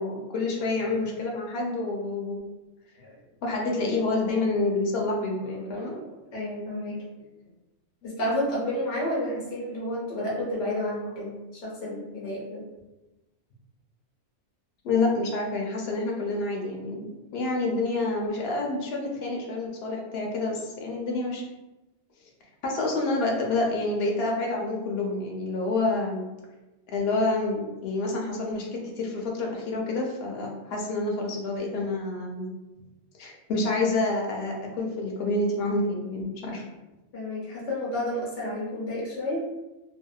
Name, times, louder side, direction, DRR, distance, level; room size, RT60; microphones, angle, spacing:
voice 1, 0.0-2.4 3.4-6.0 14.8-21.4 22.6-26.2 26.9-32.5 33.2-36.6, left 2 dB, 65° left, -1 dB, 0.8 m, -28 dB
voice 2, 5.7-7.0 8.0-12.6 37.1-39.4, left 1 dB, 90° left, -6 dB, 1.2 m, -31 dB
2.7 x 2.1 x 2.3 m, 1.0 s
omnidirectional pair, 1.2 m